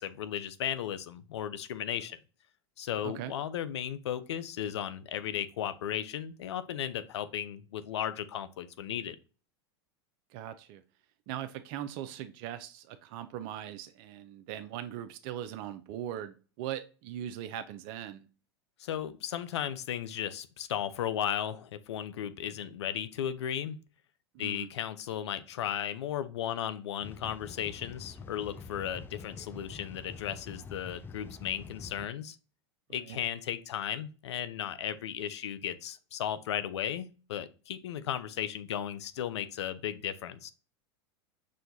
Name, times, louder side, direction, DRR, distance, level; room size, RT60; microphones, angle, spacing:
voice 1, 0.0-2.2 2.8-9.2 18.8-23.8 24.4-32.4 32.9-40.5, left 10 dB, 80° left, 13 dB, 0.5 m, -35 dB
voice 2, 10.3-10.8 11.3-18.3 24.3-24.7 32.9-33.2, right 11 dB, 55° right, 11 dB, 0.4 m, -40 dB
sound 1, 27.0-32.1, left 5 dB, 15° left, 0.3 m, -46 dB
6.2 x 2.2 x 2.7 m, 0.36 s
hypercardioid pair, 100°, 14 cm